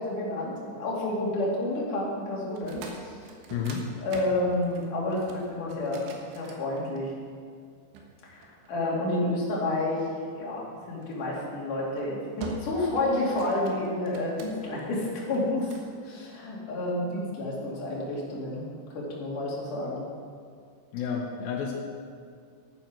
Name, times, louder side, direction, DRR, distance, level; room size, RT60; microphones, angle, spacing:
voice 1, 0.0-3.2 4.0-7.1 8.2-10.1 10.4-18.6 19.0-20.0, left 1 dB, 50° left, -5 dB, 3.8 m, -30 dB
sound 1, 2.5-7.2 7.9-9.3 11.0-11.3 11.8-12.1 12.4-13.0 13.2-14.8 15.3-15.9, right 3 dB, 80° right, 3.7 m, -44 dB
voice 2, 3.5-3.9 20.9-21.7, left 6 dB, 75° left, 0 dB, 2.3 m, -30 dB
12.5 x 9.3 x 6.1 m, 2.2 s
omnidirectional pair, 5.3 m